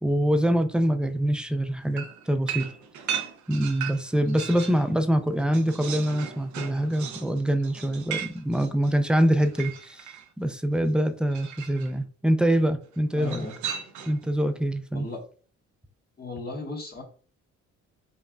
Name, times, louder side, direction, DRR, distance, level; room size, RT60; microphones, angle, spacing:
voice 1, 0.0-2.7 3.5-10.1 10.4-13.5 14.1-15.1, right 1 dB, 5° right, 0.4 m, -24 dB
sound 1, 2.0-4.8 5.2-10.3 11.3-11.9 13.2-14.3, right 8 dB, 70° right, 0.7 m, -36 dB
voice 2, 13.2-13.5 14.9-15.2 16.2-17.0, left 3 dB, 30° left, 1.2 m, -35 dB
5.3 x 2.4 x 2.2 m
cardioid pair, 90°, 30 cm